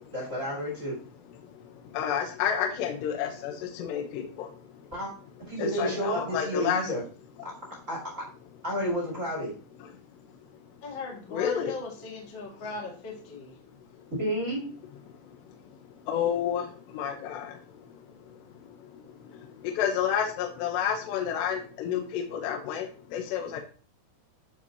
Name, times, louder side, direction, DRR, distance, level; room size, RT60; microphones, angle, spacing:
voice 1, 0.1-0.9 4.9-5.1 5.4-7.0 7.4-7.5 7.9-8.2 8.6-9.5 14.2-14.7, equal, 30° right, -3 dB, 1.5 m, -31 dB
voice 2, 1.4-4.9 5.5-6.8 9.8-9.9 10.2-10.7 11.3-11.8 14.0-14.1 15.1-23.6, left 8 dB, 75° left, 3 dB, 2.7 m, -31 dB
voice 3, 5.7-6.4 10.8-13.5, left 3 dB, 45° left, -3 dB, 1.6 m, -39 dB
12.0 x 5.1 x 2.9 m, 0.38 s
omnidirectional pair, 5.8 m